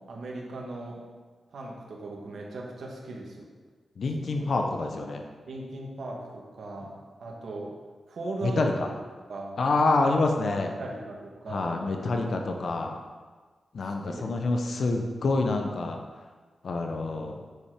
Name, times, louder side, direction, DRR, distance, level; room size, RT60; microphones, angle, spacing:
voice 1, 0.1-1.0 1.5-3.5 4.4-4.5 5.5-7.7 8.1-8.9 9.3-9.6 10.6-12.0 13.8-14.2 14.6-14.9, right 2 dB, 75° right, -1 dB, 1.6 m, -38 dB
voice 2, 4.0-5.2 8.4-8.9 9.6-10.7 11.5-13.0 13.7-16.0 16.6-17.4, left 3 dB, 65° left, 3 dB, 0.8 m, -27 dB
8.2 x 4.4 x 4.9 m, 1.4 s
cardioid pair, 50°, 0 cm